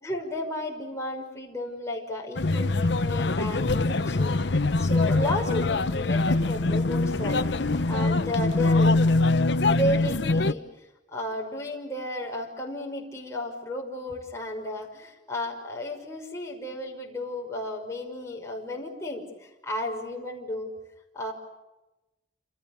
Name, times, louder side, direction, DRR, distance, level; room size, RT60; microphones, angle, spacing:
voice 1, 0.0-4.3 4.8-7.4 7.9-8.9 9.7-10.6 11.1-20.7 21.1-21.3, left 1 dB, 15° left, -1 dB, 6.0 m, -33 dB
sound 1, 2.4-10.5, left 2 dB, 70° left, 0.9 m, -23 dB
29.0 x 28.0 x 6.8 m, 1.0 s
head